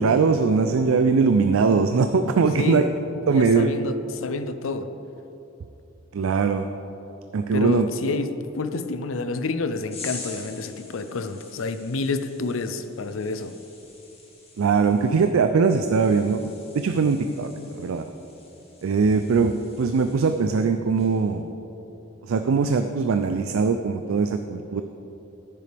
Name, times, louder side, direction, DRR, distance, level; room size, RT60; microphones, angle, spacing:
voice 1, 0.0-2.8 3.3-3.7 6.1-6.7 7.3-7.9 14.6-18.1 18.8-21.5 22.2-24.8, right 5 dB, 90° right, 7 dB, 0.4 m, -21 dB
voice 2, 2.6-2.9 3.3-4.9 7.5-8.3 8.6-13.5, left 3 dB, 75° left, 10 dB, 0.5 m, -29 dB
sound 1, 9.9-20.6 20.9-21.3, left 3 dB, 30° left, 1.7 m, -45 dB
10.5 x 9.6 x 3.4 m, 2.9 s
head